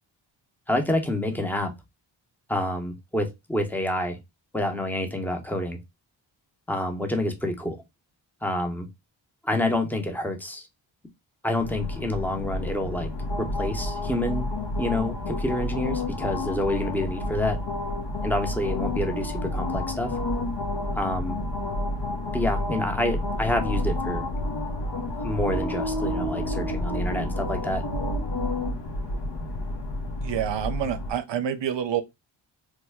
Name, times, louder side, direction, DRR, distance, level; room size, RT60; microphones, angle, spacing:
voice 1, 0.7-1.7 2.5-4.2 4.5-5.8 6.7-7.8 8.4-8.9 9.4-10.7 11.4-13.1 13.4-14.5 14.8-17.6 18.2-20.1 20.9-21.4 22.3-24.3 25.2-27.8, left 1 dB, 5° left, 0.8 m, -28 dB
sound 1, 11.6-31.1, left 1 dB, 55° left, 1.0 m, -29 dB
voice 2, 30.2-32.0, right 9 dB, 60° right, 0.7 m, -27 dB
3.3 x 2.1 x 3.4 m
cardioid pair, 55°, 49 cm